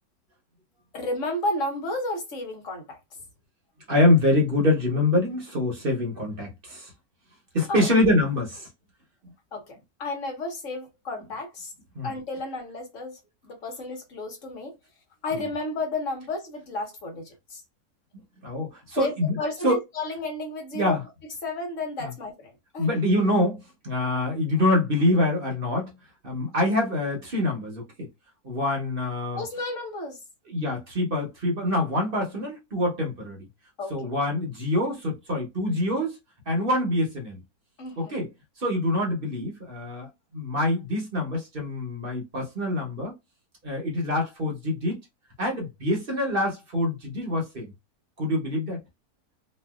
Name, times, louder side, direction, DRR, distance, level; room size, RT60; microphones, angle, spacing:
voice 1, 0.9-3.0 7.7-7.9 9.5-11.7 12.0-14.7 15.2-17.6 18.9-21.0 21.4-23.0 29.3-30.2 33.8-33.9 37.8-38.1, left 2 dB, 55° left, 1.3 m, -32 dB
voice 2, 3.9-6.9 7.5-8.7 11.9-12.1 18.4-19.4 19.6-19.8 20.7-21.0 22.0-22.1 22.8-25.9 26.2-27.8 28.4-29.4 30.5-33.4 33.9-36.2 36.5-37.4 38.0-38.3 38.6-43.1 43.6-45.0 45.4-47.7 48.2-48.8, left 1 dB, 40° right, 1.0 m, -25 dB
3.1 x 2.3 x 2.3 m
omnidirectional pair, 1.6 m